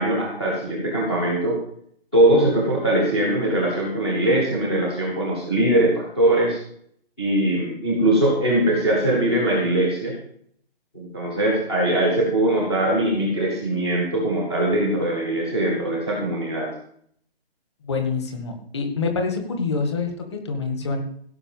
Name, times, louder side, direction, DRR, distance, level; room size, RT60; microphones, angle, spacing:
voice 1, 0.0-1.6 2.1-6.6 7.2-10.1 10.9-16.7, right 1 dB, 5° left, -8 dB, 0.7 m, -21 dB
voice 2, 17.8-21.0, left 4 dB, 25° left, 4 dB, 1.8 m, -26 dB
16.0 x 5.8 x 7.2 m, 0.65 s
hypercardioid pair, 175°, 32 cm